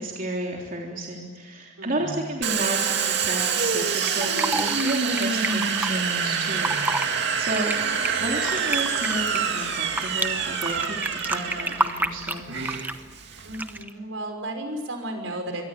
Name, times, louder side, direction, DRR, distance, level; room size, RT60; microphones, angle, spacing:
voice 1, 0.0-12.5, right 1 dB, 45° right, -1 dB, 3.5 m, -32 dB
voice 2, 1.8-2.5 7.6-8.0 13.4-15.7, right 1 dB, 75° right, 5 dB, 5.7 m, -34 dB
Domestic sounds home sounds, 2.4-13.8, right 6 dB, 60° right, 2.6 m, -26 dB
Fill (with liquid), 3.9-5.9 6.5-7.1 7.4-10.3 10.6-13.0 13.5-13.9, right 2 dB, 10° right, 1.0 m, -29 dB
26.5 x 23.5 x 8.6 m, 1.5 s
head